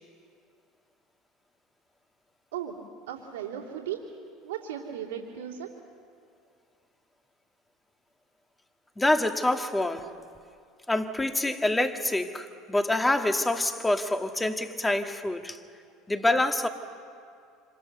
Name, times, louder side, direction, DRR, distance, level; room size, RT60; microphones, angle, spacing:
voice 1, 3.1-4.0 4.4-5.7, right 10 dB, 85° right, 3.0 m, -36 dB
voice 2, 9.0-10.1 10.9-15.6 16.1-16.7, left 1 dB, 10° left, 1.8 m, -26 dB
26.5 x 26.5 x 6.8 m
hypercardioid pair, 80°, 0 cm